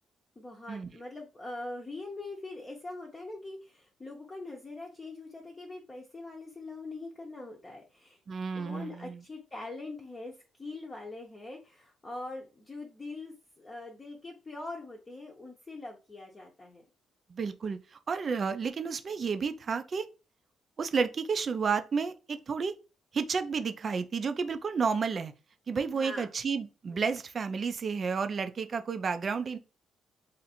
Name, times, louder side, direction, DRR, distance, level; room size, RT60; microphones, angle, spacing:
voice 1, 0.4-8.2 8.5-10.3 10.6-16.8 25.9-26.3, left 2 dB, 25° left, 0.7 m, -43 dB
voice 2, 8.3-9.2 17.3-20.1 20.8-22.7 23.1-25.3 25.7-29.6, right 5 dB, 45° right, 0.4 m, -31 dB
2.5 x 2.5 x 4.2 m
cardioid pair, 90°, 0 cm